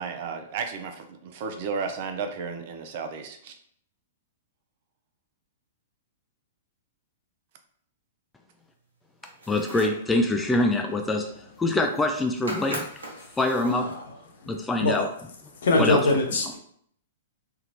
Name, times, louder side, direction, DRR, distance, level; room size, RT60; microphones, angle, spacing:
voice 1, 0.0-3.5, right 5 dB, 50° right, 6 dB, 0.5 m, -33 dB
sound 1, 9.2-10.1 11.6-11.7 11.9-12.2 12.5-13.8, right 1 dB, 80° right, 1.0 m, -38 dB
voice 2, 9.5-12.9 13.4-13.9 14.5-15.1 15.7-16.0, left 2 dB, 10° left, 4 dB, 0.3 m, -25 dB
voice 3, 13.7-14.2 14.4-14.5 14.8-15.1 15.6-16.6, left 2 dB, 65° left, 2 dB, 0.7 m, -23 dB
3.4 x 2.4 x 2.9 m, 0.64 s
figure-of-eight pair, 110°, 0 cm